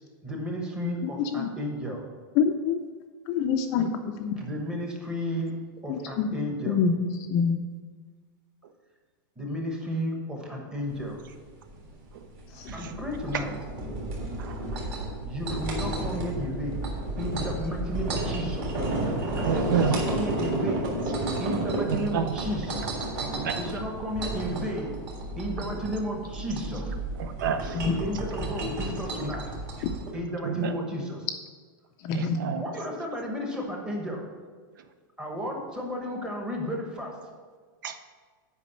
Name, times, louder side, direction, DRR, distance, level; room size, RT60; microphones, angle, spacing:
voice 1, 0.2-2.0 4.4-5.5 5.8-6.8 9.4-11.2 12.7-13.6 15.2-16.8 17.2-18.7 19.3-21.0 21.4-22.9 23.5-25.0 25.4-26.9 27.8-29.5 30.1-31.3 32.6-34.2 35.2-37.1, equal, 5° right, 0 dB, 1.1 m, -33 dB
voice 2, 1.0-1.5 2.4-2.8 3.3-3.9 4.2-4.4 5.9-6.3 6.7-7.6 12.6-12.7 27.7-28.0 32.0-32.4, left 6 dB, 25° left, 6 dB, 0.5 m, -26 dB
sound 1, 10.9-30.1, right 2 dB, 30° right, 1.8 m, -32 dB
voice 3, 19.4-19.9 21.9-22.3 23.2-23.6 27.2-27.8 30.4-30.7 32.1-32.6 37.8-38.0, right 7 dB, 65° right, 9 dB, 0.7 m, -29 dB
8.4 x 5.3 x 6.7 m, 1.5 s
supercardioid pair, 175°, 12 cm